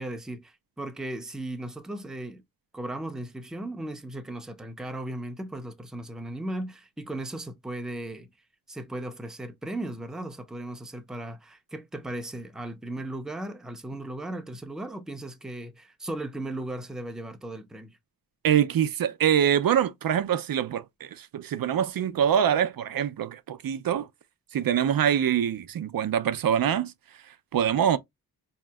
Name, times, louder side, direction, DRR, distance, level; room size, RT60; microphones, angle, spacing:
voice 1, 0.0-2.4 2.7-8.3 8.7-18.0, right 1 dB, ahead, 0.5 m, -36 dB
voice 2, 18.4-24.1 24.5-26.9 27.5-28.0, right 9 dB, 70° right, 0.5 m, -24 dB
5.0 x 2.8 x 2.2 m
wide cardioid pair, 160°, 36 cm